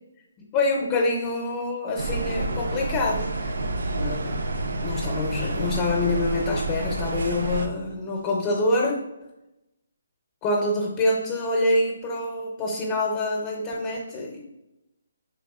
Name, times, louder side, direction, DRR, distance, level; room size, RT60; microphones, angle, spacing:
voice 1, 0.4-3.5 3.9-4.4 4.8-9.0 10.4-14.4, left 2 dB, 20° left, -1 dB, 0.6 m, -26 dB
sound 1, 2.0-7.7, right 2 dB, 75° right, 0.5 m, -29 dB
4.5 x 3.3 x 2.3 m, 0.93 s
hypercardioid pair, 160°, 0 cm